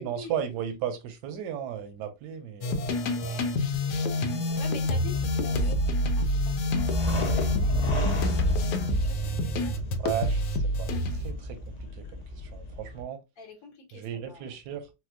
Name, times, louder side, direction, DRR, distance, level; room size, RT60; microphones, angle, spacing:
voice 1, 0.0-3.0 10.0-10.4 10.8-13.2 13.9-14.9, right 9 dB, 85° right, 1.2 m, -35 dB
sound 1, 2.6-11.3, left 1 dB, 85° left, 1.2 m, -27 dB
voice 2, 3.2-3.5 4.6-9.8 13.4-14.6, left 4 dB, 65° left, 1.4 m, -47 dB
sound 2, 4.5-13.0, left 1 dB, 40° left, 0.5 m, -32 dB
4.2 x 2.0 x 2.5 m
omnidirectional pair, 1.7 m